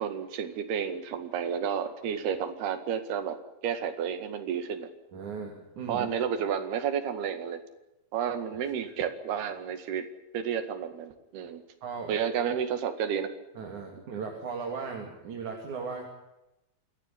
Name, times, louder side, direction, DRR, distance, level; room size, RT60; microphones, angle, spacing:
voice 1, 0.0-3.4 3.6-4.9 5.9-7.6 8.1-10.1 10.3-11.6 12.1-13.3 13.9-14.0, right 8 dB, 85° right, 9 dB, 4.1 m, -31 dB
voice 2, 5.1-6.1 8.5-8.6 11.8-12.1 13.6-16.1, right 5 dB, 55° right, 1 dB, 4.0 m, -37 dB
28.0 x 13.5 x 10.0 m, 0.95 s
omnidirectional pair, 4.4 m